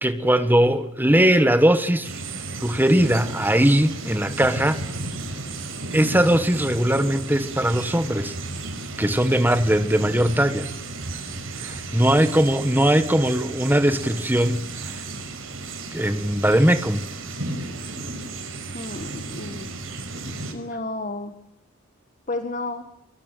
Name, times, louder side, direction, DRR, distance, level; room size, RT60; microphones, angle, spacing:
voice 1, 0.0-2.1 2.6-4.8 5.9-8.3 9.0-10.7 11.6-14.6 14.8-15.0 15.9-17.0, right 1 dB, 10° right, 1.5 m, -20 dB
sound 1, 2.0-20.5, right 3 dB, 75° right, 5.2 m, -34 dB
voice 2, 18.7-19.7 20.5-21.3 22.3-22.9, left 2 dB, 35° left, 1.7 m, -32 dB
23.5 x 22.5 x 9.2 m
head